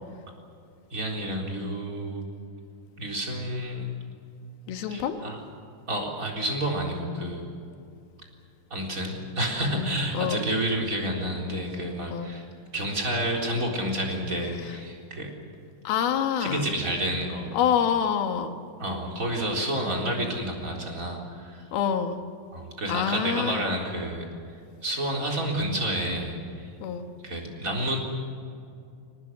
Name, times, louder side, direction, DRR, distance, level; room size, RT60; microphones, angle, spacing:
voice 1, 0.9-2.2 3.0-3.9 4.9-5.4 5.9-7.5 8.7-12.5 12.7-15.3 16.4-17.5 18.8-21.7 22.5-24.3 24.8-26.7 27.2-28.0, right 1 dB, 20° right, 0 dB, 4.0 m, -29 dB
voice 2, 4.7-5.2 9.7-10.4 12.1-12.3 15.8-16.7 17.5-18.5 21.7-22.2 22.9-23.7 26.8-27.1, left 8 dB, 70° left, 7 dB, 3.1 m, -26 dB
25.5 x 19.0 x 8.3 m, 2.4 s
omnidirectional pair, 4.7 m